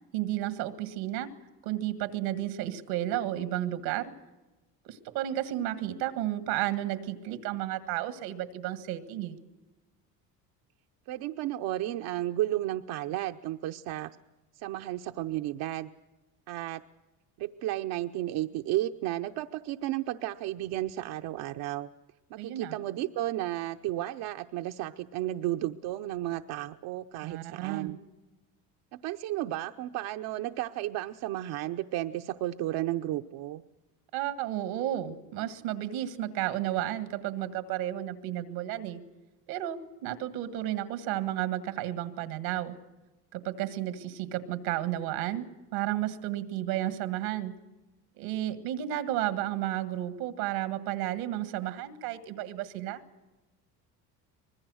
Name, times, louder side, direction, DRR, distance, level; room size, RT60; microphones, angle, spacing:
voice 1, 0.1-1.3 1.6-4.1 4.8-9.4 22.4-22.7 27.2-28.0 34.1-39.0 39.5-42.8 43.3-45.5 45.7-47.6 48.2-53.0, right 13 dB, 90° right, 11 dB, 1.8 m, -32 dB
voice 2, 11.1-14.1 14.6-15.9 16.5-16.8 17.4-21.9 22.3-28.0 28.9-33.6, right 14 dB, 65° right, 6 dB, 0.8 m, -33 dB
25.0 x 20.5 x 6.3 m, 1.1 s
supercardioid pair, 95°, 40 cm